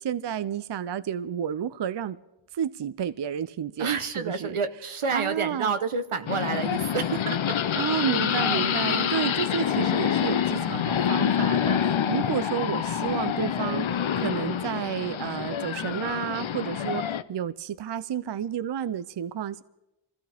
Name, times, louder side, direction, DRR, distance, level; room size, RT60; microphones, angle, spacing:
voice 1, 0.0-2.2 2.5-4.6 5.1-5.7 7.7-17.0 17.3-19.6, right 9 dB, 60° right, 15 dB, 0.5 m, -31 dB
voice 2, 3.8-7.6 8.9-9.1 12.1-12.3, right 5 dB, 90° right, 9 dB, 1.0 m, -29 dB
sound 1, 6.3-17.2, left 8 dB, 70° left, 0.6 m, -27 dB
25.0 x 15.5 x 3.4 m, 0.94 s
wide cardioid pair, 60°, 49 cm